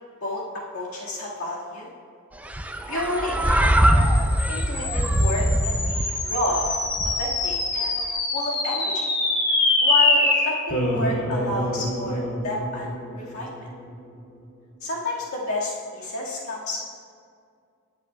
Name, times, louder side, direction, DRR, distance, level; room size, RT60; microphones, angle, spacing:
voice 1, 0.7-1.9 2.9-4.1 4.5-6.7 7.0-8.0 8.3-9.1 9.8-13.7 14.8-16.8, left 2 dB, 80° left, -5 dB, 1.9 m, -30 dB
sound 1, 2.4-7.5, right 1 dB, 5° right, 0.5 m, -22 dB
sound 2, 3.2-13.9, left 2 dB, 55° left, 2.6 m, -25 dB
18.5 x 8.9 x 2.3 m, 2.2 s
head